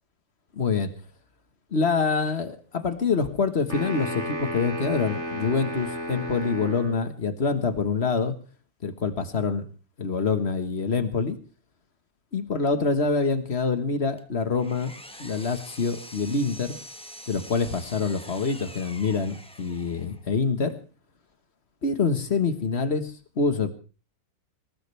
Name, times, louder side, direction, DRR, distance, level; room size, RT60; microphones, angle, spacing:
voice 1, 0.5-0.9 1.7-8.3 8.8-9.6 10.0-11.4 12.3-14.9 15.2-16.8 17.3-20.7 21.8-23.7, left 4 dB, 40° left, 10 dB, 1.6 m, -26 dB
sound 1, 3.7-7.0, equal, 40° right, 2.9 m, -33 dB
Power tool, 14.2-20.3, equal, 5° left, 1.2 m, -45 dB
19.5 x 19.5 x 3.4 m, 0.36 s
omnidirectional pair, 1.8 m